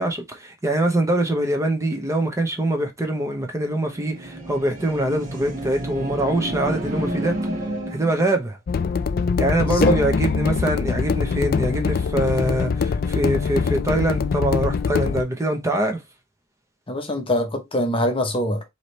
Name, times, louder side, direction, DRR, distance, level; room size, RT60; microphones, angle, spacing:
voice 1, 0.0-7.4 7.9-8.6 9.4-16.0, right 1 dB, 15° right, 0.8 m, -23 dB
sound 1, 3.7-8.4, right 1 dB, 40° right, 1.3 m, -30 dB
sound 2, 8.7-15.2, left 5 dB, 50° left, 0.4 m, -23 dB
voice 2, 9.7-10.0 16.9-18.6, left 1 dB, 25° left, 0.8 m, -23 dB
4.9 x 2.8 x 3.1 m
head